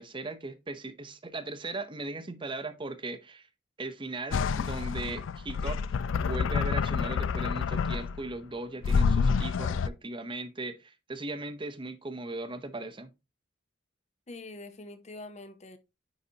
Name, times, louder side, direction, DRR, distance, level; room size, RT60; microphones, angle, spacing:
voice 1, 0.0-3.5 3.8-5.8 6.2-13.1, right 2 dB, 25° right, 0.7 m, -38 dB
sound 1, 4.3-8.3 8.8-9.9, left 5 dB, 75° left, 0.4 m, -28 dB
voice 2, 14.3-15.8, left 2 dB, 35° left, 0.8 m, -44 dB
9.6 x 4.0 x 2.8 m
head